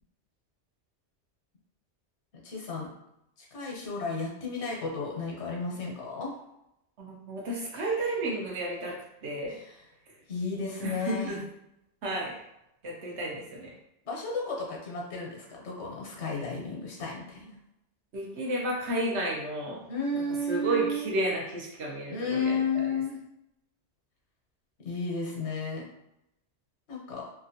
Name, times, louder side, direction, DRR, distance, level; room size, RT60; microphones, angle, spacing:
voice 1, 2.4-2.9 3.4-6.3 9.5-9.8 10.3-11.3 14.0-17.6 19.9-21.1 22.1-23.2 24.8-25.9 26.9-27.3, left 3 dB, 70° left, -2 dB, 1.1 m, -33 dB
voice 2, 7.0-9.6 10.8-11.4 12.0-12.4 12.8-13.7 18.1-19.9 20.1-22.9, right 1 dB, 75° right, -2 dB, 1.0 m, -32 dB
2.9 x 2.4 x 2.7 m, 0.83 s
omnidirectional pair, 1.2 m